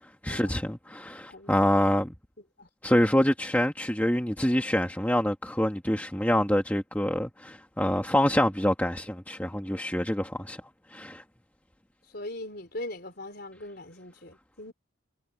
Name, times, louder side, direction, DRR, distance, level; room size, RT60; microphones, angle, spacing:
voice 1, 0.2-2.1 2.8-10.6 10.9-11.2, equal, 10° left, 1.5 m, -26 dB
voice 2, 2.4-2.7 12.1-14.7, left 1 dB, 50° left, 4.4 m, -40 dB
head